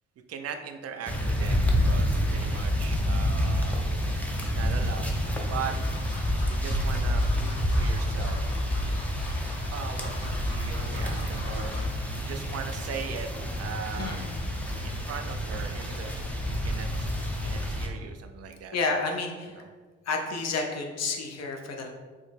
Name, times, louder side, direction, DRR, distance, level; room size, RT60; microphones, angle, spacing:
voice 1, 0.3-3.8 4.4-5.2 5.4-5.8 6.5-8.4 9.7-11.8 12.1-13.3 13.6-14.2 14.8-16.1 16.5-18.8 19.5-19.7, right 7 dB, 50° right, 6 dB, 0.4 m, -39 dB
sound 1, 1.1-17.9, equal, 5° left, 0.6 m, -28 dB
voice 2, 2.2-2.5 14.0-14.2 18.7-19.6 20.1-21.9, left 3 dB, 50° left, 2 dB, 0.6 m, -31 dB
sound 2, 4.2-4.5 5.2-11.9 12.3-12.6 12.9-13.0, left 2 dB, 70° left, 1.0 m, -45 dB
3.3 x 2.0 x 3.3 m, 1.5 s
supercardioid pair, 50°, 33 cm